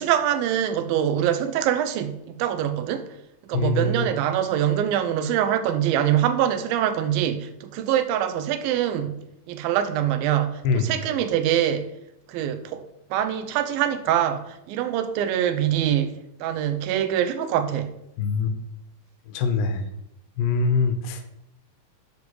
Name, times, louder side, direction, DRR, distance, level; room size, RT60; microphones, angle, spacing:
voice 1, 0.0-3.1 3.4-9.1 9.5-11.9 12.3-12.8 13.1-16.1 16.4-17.9, right 10 dB, 85° right, 2.5 m, -24 dB
voice 2, 3.5-4.1 10.6-10.9 18.2-18.5 19.3-19.8 20.4-21.2, left 4 dB, 80° left, 2.5 m, -23 dB
12.0 x 7.0 x 3.2 m
omnidirectional pair, 4.1 m